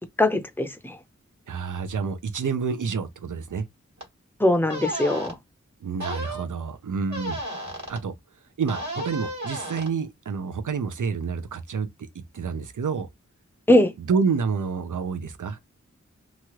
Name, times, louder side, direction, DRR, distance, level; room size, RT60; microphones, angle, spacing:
voice 1, 0.2-1.0 4.4-5.4 13.7-13.9, left 1 dB, 5° left, 0.6 m, -21 dB
voice 2, 1.5-3.6 5.8-7.4 7.9-8.1 8.6-12.1 12.3-13.1 14.1-15.6, right 5 dB, 85° right, 0.5 m, -28 dB
sound 1, 4.0-4.1 4.7-5.3 6.0-6.5 7.1-8.0 8.7-9.9, equal, 70° right, 1.2 m, -33 dB
3.0 x 2.4 x 2.9 m
wide cardioid pair, 60°, 30 cm